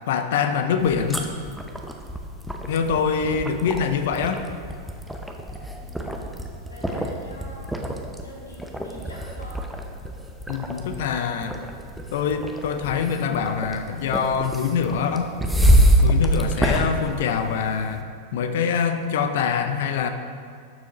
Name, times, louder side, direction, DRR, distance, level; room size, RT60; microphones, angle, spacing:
voice 1, 0.1-1.3 2.7-4.4 10.5-11.6 12.1-15.3 16.0-18.0 18.3-20.1, left 6 dB, 55° left, 8 dB, 0.7 m, -24 dB
sound 1, 0.8-18.0, equal, ahead, 0.7 m, -26 dB
voice 2, 5.7-6.3 6.7-7.8 8.2-9.6, left 1 dB, 80° left, -4 dB, 2.3 m, -44 dB
12.0 x 7.0 x 3.0 m, 2.1 s
figure-of-eight pair, 90°, 0 cm